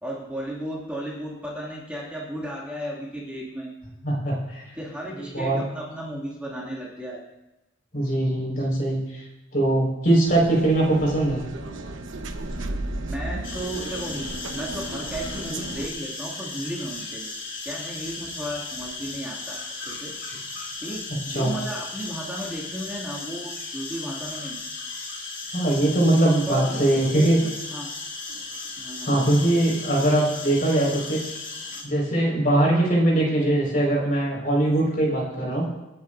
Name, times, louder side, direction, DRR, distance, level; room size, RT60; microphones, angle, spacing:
voice 1, 0.0-3.7 4.7-7.2 13.0-17.3 17.6-20.1 20.8-24.6 26.5-27.9 28.8-29.4, equal, 5° right, -6 dB, 2.3 m, -34 dB
voice 2, 4.0-4.6 5.3-5.6 7.9-9.2 9.5-11.4 21.1-21.5 25.5-27.4 29.0-31.2 31.8-35.7, right 1 dB, 40° left, -2 dB, 4.9 m, -21 dB
sound 1, 10.3-15.9, right 1 dB, 65° right, 1.1 m, -34 dB
sound 2, 13.4-31.8, left 3 dB, 60° left, 3.1 m, -36 dB
27.5 x 9.3 x 2.6 m, 1.0 s
head